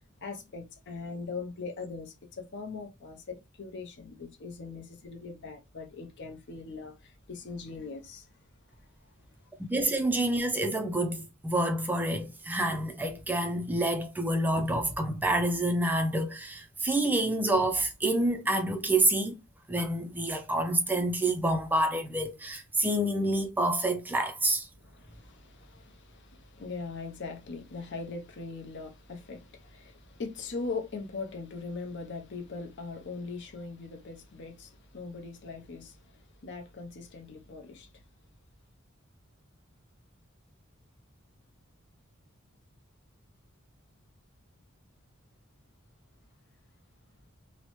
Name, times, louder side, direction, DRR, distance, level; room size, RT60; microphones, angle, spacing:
voice 1, 0.2-8.3 24.8-36.0 36.4-37.9, left 4 dB, 60° left, 0.7 m, -40 dB
voice 2, 9.7-19.3 19.7-24.7, right 1 dB, 10° right, 0.3 m, -28 dB
2.9 x 2.0 x 3.0 m
head